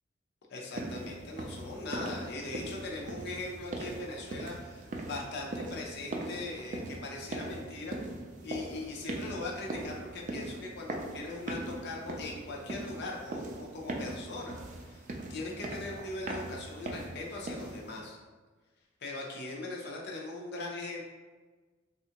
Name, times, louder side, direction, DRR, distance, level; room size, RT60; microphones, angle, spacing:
voice 1, 0.5-8.0 8.4-14.6 14.9-18.2 19.0-21.0, left 2 dB, 60° left, -1 dB, 0.6 m, -40 dB
sound 1, 0.7-18.0, right 2 dB, 40° right, 0.3 m, -40 dB
3.4 x 2.4 x 2.8 m, 1.3 s
head